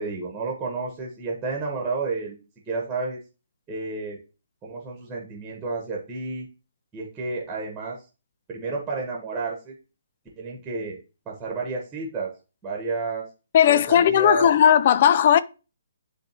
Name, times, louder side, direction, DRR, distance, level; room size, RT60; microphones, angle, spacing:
voice 1, 0.0-2.4 2.7-3.2 3.7-4.2 4.6-6.5 6.9-8.0 8.5-9.7 10.4-11.0 11.2-12.3 12.6-13.2 13.7-14.5, right 3 dB, 10° right, 1.3 m, -31 dB
voice 2, 13.5-15.4, left 9 dB, 40° left, 0.4 m, -17 dB
10.5 x 3.5 x 2.9 m
figure-of-eight pair, 130°, 0 cm